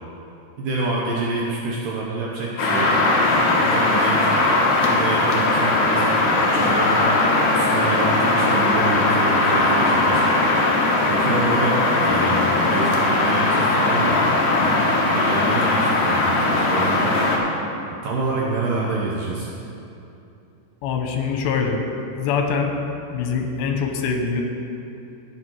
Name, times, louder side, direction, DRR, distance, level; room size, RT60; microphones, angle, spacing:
voice 1, 0.6-3.0 3.6-4.2 4.8-6.1 6.4-7.1 7.5-10.2 11.1-14.2 14.6-17.3 18.0-19.5, right 3 dB, 70° right, -3 dB, 2.1 m, -27 dB
sound 1, 2.6-17.4, left 2 dB, 65° left, 2.1 m, -19 dB
voice 2, 20.8-21.8 22.2-22.7 23.1-24.4, left 5 dB, 85° left, 3 dB, 3.2 m, -23 dB
16.0 x 6.2 x 4.7 m, 2.8 s
omnidirectional pair, 4.9 m